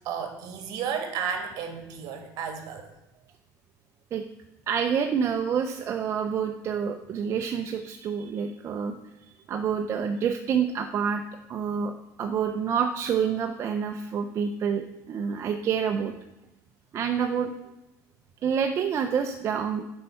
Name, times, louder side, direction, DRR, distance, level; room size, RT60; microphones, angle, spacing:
voice 1, 0.0-2.8, right 7 dB, 60° right, 5 dB, 1.6 m, -33 dB
voice 2, 4.7-8.9 9.5-11.2 11.5-16.1 16.9-17.5 18.4-19.8, right 7 dB, 40° right, 5 dB, 0.5 m, -27 dB
7.8 x 5.4 x 5.6 m, 0.95 s
cardioid pair, 135°, 8 cm